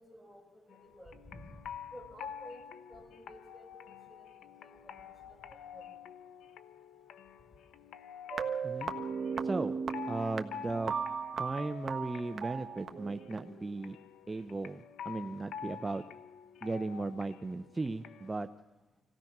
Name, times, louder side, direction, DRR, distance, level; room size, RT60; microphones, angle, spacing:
voice 1, 0.0-1.6 1.9-2.6 2.9-3.7 4.1-4.3 4.6-5.9, equal, 10° left, 1 dB, 5.7 m, -52 dB
sound 1, 0.7-18.3, left 8 dB, 80° left, 0.8 m, -48 dB
sound 2, 8.3-13.4, right 6 dB, 50° right, 1.4 m, -37 dB
voice 2, 9.4-9.8 10.1-10.9 11.4-14.0 14.3-16.0 16.6-18.5, right 3 dB, 20° right, 9 dB, 0.7 m, -36 dB
26.0 x 16.5 x 6.0 m, 1.1 s
cardioid pair, 90°, 0 cm